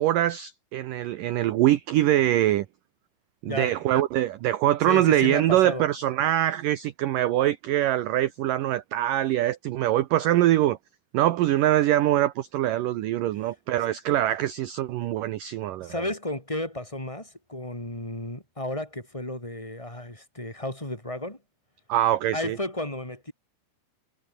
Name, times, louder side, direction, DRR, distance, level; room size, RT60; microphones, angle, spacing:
voice 1, 0.0-2.7 3.4-10.8 11.1-16.0 21.9-22.6, right 13 dB, 70° right, 2.1 m, -23 dB
voice 2, 4.8-5.8 15.8-21.4 22.3-23.3, left 1 dB, 5° left, 4.7 m, -33 dB
omnidirectional pair, 5.0 m